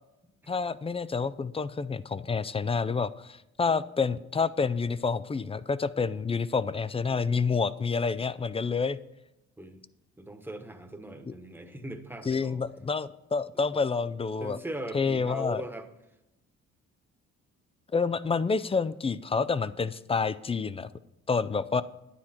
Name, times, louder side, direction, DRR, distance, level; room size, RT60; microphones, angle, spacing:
voice 1, 0.5-9.0 12.3-14.6 14.9-15.6 17.9-20.9 21.3-21.8, left 5 dB, 20° left, 16 dB, 0.4 m, -28 dB
voice 2, 10.2-12.6 14.4-15.9, right 1 dB, 5° right, 6 dB, 1.2 m, -39 dB
9.7 x 9.7 x 4.4 m, 0.91 s
cardioid pair, 90°, 30 cm